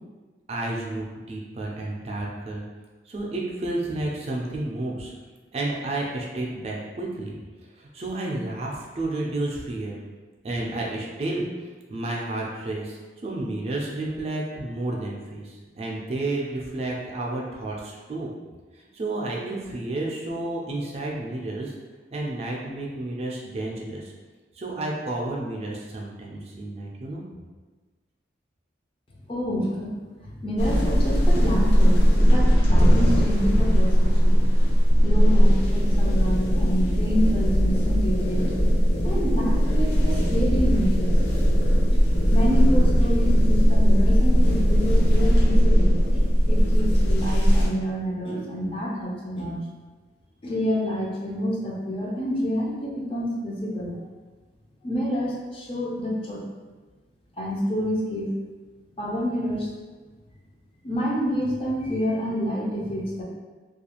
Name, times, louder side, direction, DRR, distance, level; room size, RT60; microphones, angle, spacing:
voice 1, 0.5-2.6 3.1-5.1 5.5-7.4 7.8-10.0 10.4-11.4 11.9-18.3 18.7-21.7 22.1-24.1 24.5-27.2, right 2 dB, 35° right, -3 dB, 0.3 m, -31 dB
voice 2, 29.3-34.4 35.0-38.6 39.0-41.2 41.9-49.6 50.4-54.1 54.8-56.4 57.4-58.4 59.0-59.7 60.8-63.2, equal, 30° left, -3 dB, 0.4 m, -28 dB
sound 1, 30.6-47.7, equal, 70° left, 0.7 m, -19 dB
2.4 x 2.3 x 2.9 m, 1.3 s
head